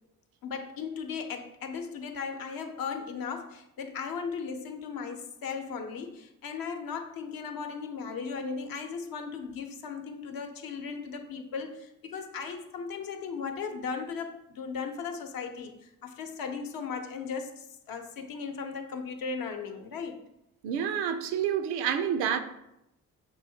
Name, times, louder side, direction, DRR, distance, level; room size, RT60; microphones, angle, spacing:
voice 1, 0.4-20.2, left 5 dB, 65° left, 0.8 m, -37 dB
voice 2, 20.6-22.4, right 8 dB, 80° right, 0.5 m, -28 dB
6.1 x 2.8 x 2.7 m
hypercardioid pair, 50°, 37 cm